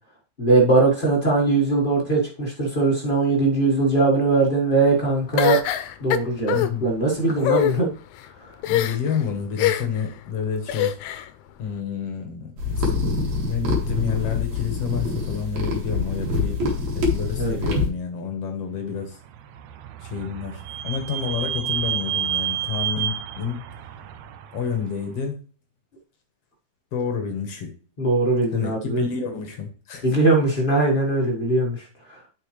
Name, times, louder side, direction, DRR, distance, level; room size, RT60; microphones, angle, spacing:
voice 1, 0.4-5.6 6.0-6.5 6.8-7.9 17.4-17.6 28.0-29.0 30.0-32.2, right 3 dB, 35° left, -2 dB, 0.7 m, -20 dB
sound 1, 5.4-6.7 7.4-7.7 8.6-9.1 9.6-10.0 10.7-11.3, left 12 dB, 80° left, 1.9 m, -23 dB
voice 2, 6.5-6.9 8.6-11.0 11.6-12.9 13.4-16.6 17.0-19.2 20.0-23.7 24.5-25.4 26.9-27.7 28.5-30.1, left 6 dB, 60° left, 4 dB, 2.1 m, -29 dB
sound 2, 12.6-17.9, left 3 dB, 60° right, 3.1 m, -25 dB
Vehicle / Squeak, 19.3-24.9, right 10 dB, 75° right, 1.7 m, -30 dB
8.9 x 5.8 x 3.2 m, 0.38 s
omnidirectional pair, 3.6 m